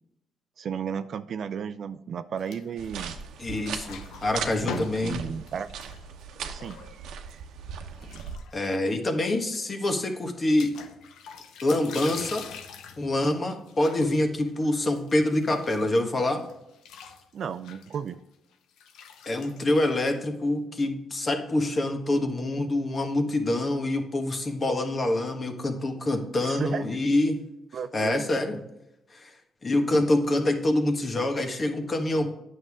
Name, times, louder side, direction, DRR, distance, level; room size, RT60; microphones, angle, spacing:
voice 1, 0.6-3.2 4.6-5.7 6.5-6.8 17.3-18.2 26.4-27.0 27.7-28.2, right 7 dB, 60° right, 13 dB, 0.4 m, -34 dB
sound 1, 2.4-3.2 3.5-7.3 7.9-8.9 9.2-9.3 9.5-9.6 10.6-16.1 16.4-20.4, left 7 dB, 85° left, 0.8 m, -43 dB
sound 2, 2.8-8.4, right 7 dB, 80° right, 0.8 m, -38 dB
voice 2, 3.4-5.2 8.5-10.8 11.6-12.5 13.0-16.5 19.2-27.4 27.9-28.6 29.1-29.3 29.6-32.4, left 1 dB, 35° left, 5 dB, 1.4 m, -26 dB
9.0 x 6.6 x 3.6 m, 0.86 s
cardioid pair, 90°, 0 cm